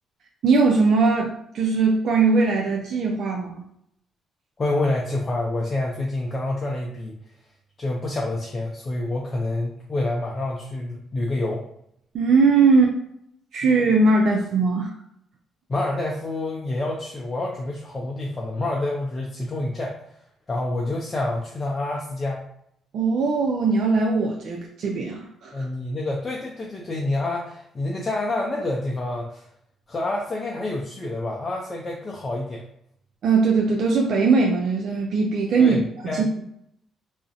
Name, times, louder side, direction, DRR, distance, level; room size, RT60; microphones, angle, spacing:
voice 1, 0.4-3.6 12.1-12.9 13.5-14.9 22.9-25.7 33.2-36.4, right 4 dB, 65° right, -1 dB, 0.3 m, -20 dB
voice 2, 4.6-7.1 7.8-11.6 15.7-19.9 20.5-22.5 25.5-29.4 29.9-32.6 35.6-36.2, left 2 dB, 35° left, -2 dB, 0.5 m, -27 dB
2.4 x 2.0 x 2.6 m, 0.72 s
supercardioid pair, 65°, 0 cm